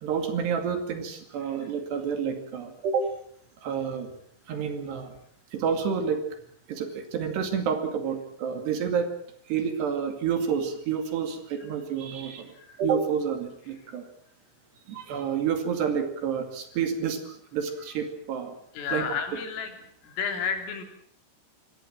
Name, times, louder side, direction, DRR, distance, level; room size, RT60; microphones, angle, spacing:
voice 1, 0.0-3.1 3.6-4.1 4.5-5.1 5.5-6.2 6.7-9.1 9.5-12.5 12.8-14.1 14.9-18.6 18.9-19.1, right 7 dB, 60° right, 7 dB, 4.2 m, -29 dB
voice 2, 18.8-19.7 20.0-20.8, left 6 dB, 80° left, 6 dB, 5.8 m, -31 dB
24.5 x 18.0 x 7.5 m, 0.64 s
omnidirectional pair, 5.8 m